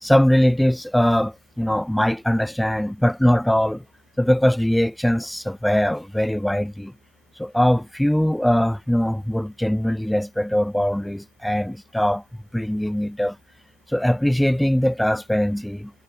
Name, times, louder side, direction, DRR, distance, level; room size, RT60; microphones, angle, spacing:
voice 1, 0.0-3.8 4.2-6.9 7.4-12.2 12.5-13.4 13.9-15.9, equal, ahead, 1.0 m, -21 dB
figure-of-eight pair, 90°, 0 cm